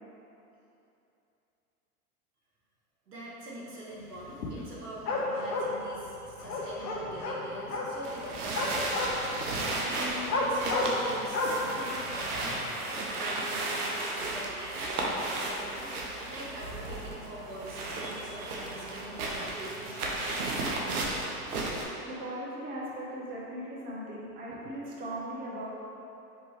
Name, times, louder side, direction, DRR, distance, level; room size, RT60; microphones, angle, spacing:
voice 1, 3.1-21.1, right 1 dB, 90° right, -5 dB, 1.1 m, -43 dB
sound 1, 4.1-4.7 5.0-13.0, left 2 dB, 90° left, 0.7 m, -33 dB
sound 2, 8.0-21.8, right 2 dB, 75° right, 0.8 m, -34 dB
voice 2, 22.0-25.7, right 1 dB, 20° right, -5 dB, 0.7 m, -38 dB
4.6 x 2.9 x 3.0 m, 2.9 s
hypercardioid pair, 100°, 46 cm